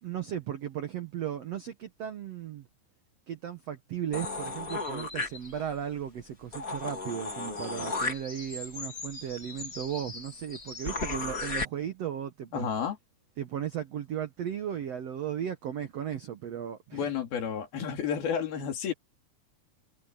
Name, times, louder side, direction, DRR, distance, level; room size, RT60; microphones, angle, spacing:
voice 1, 0.0-2.7 3.3-12.7 13.4-17.1, right 9 dB, 80° right, 1.4 m, -36 dB
sound 1, 4.1-5.8 6.2-6.3 6.5-11.6, left 3 dB, 25° left, 2.9 m, -36 dB
voice 2, 12.5-13.0 16.9-18.9, left 7 dB, 65° left, 4.9 m, -31 dB
omnidirectional pair, 4.7 m